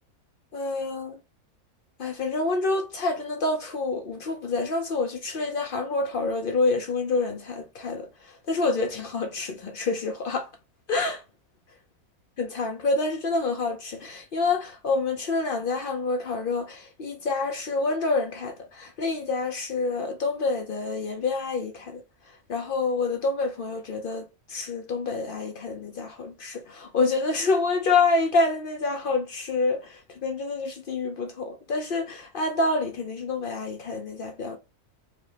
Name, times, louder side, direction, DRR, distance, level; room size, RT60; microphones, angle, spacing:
voice 1, 0.5-1.2 2.0-10.5 10.9-11.2 12.4-22.0 22.5-34.6, left 3 dB, 70° left, 0.5 m, -27 dB
4.9 x 2.0 x 2.7 m
omnidirectional pair, 1.5 m